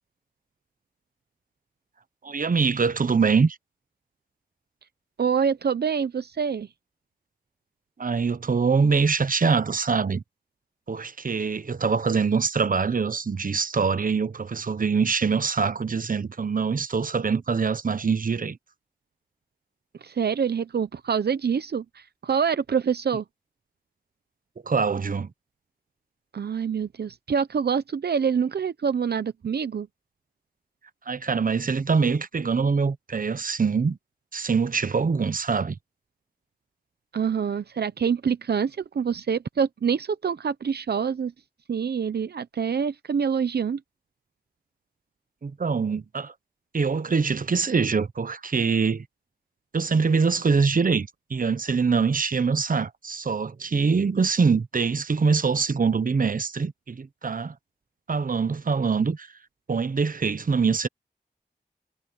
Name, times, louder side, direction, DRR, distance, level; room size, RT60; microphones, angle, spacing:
voice 1, 2.2-3.6 8.0-10.2 10.9-18.6 24.6-25.3 31.1-34.0 34.3-35.8 45.4-46.3 46.7-49.0 49.7-57.5 58.1-59.3 59.7-60.9, right 5 dB, 55° right, 0.9 m, -24 dB
voice 2, 5.2-6.7 20.0-23.2 26.3-29.9 37.1-41.3 41.7-43.8, right 6 dB, 80° right, 0.7 m, -26 dB
wide cardioid pair, 65°, 17 cm